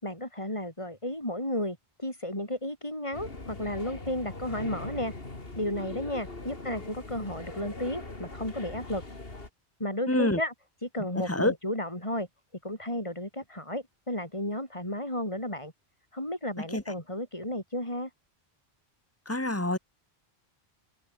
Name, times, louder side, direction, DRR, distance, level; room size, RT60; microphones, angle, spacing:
voice 1, 0.0-5.1 5.6-9.0 9.8-10.5 10.8-12.3 12.6-15.7 16.1-18.1, left 1 dB, 30° left, 7.5 m, -33 dB
sound 1, 3.1-9.5, left 2 dB, 65° left, 3.5 m, -41 dB
voice 2, 10.1-10.4 11.3-11.5 16.7-16.8 19.3-19.8, left 1 dB, 15° left, 2.8 m, -26 dB
omnidirectional pair, 1.1 m